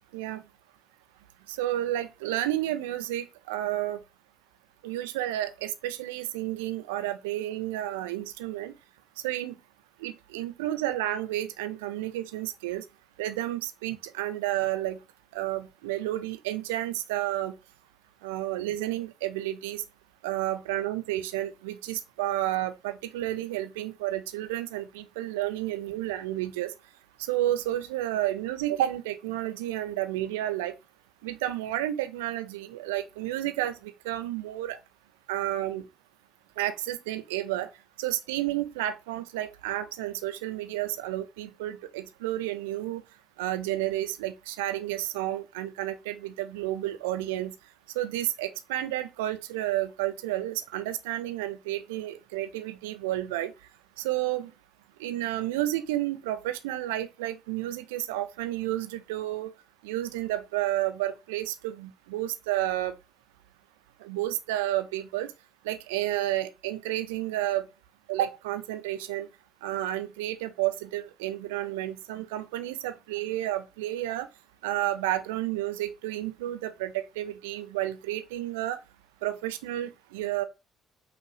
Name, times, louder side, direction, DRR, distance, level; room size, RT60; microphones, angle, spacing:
voice 1, 1.5-4.0 4.8-8.7 9.2-9.6 10.0-12.8 13.2-15.0 15.3-17.5 18.2-19.8 20.2-26.7 27.2-30.7 31.2-34.8 35.3-35.8 36.6-37.7 38.0-43.0 43.4-47.5 48.0-53.5 54.0-54.5 55.0-59.5 59.8-62.9 64.0-65.3 65.6-67.6 68.1-69.3 69.6-74.3 74.6-78.8 79.2-80.4, right 14 dB, 75° right, 0.4 m, -31 dB
5.6 x 2.5 x 3.2 m
figure-of-eight pair, 45°, 0 cm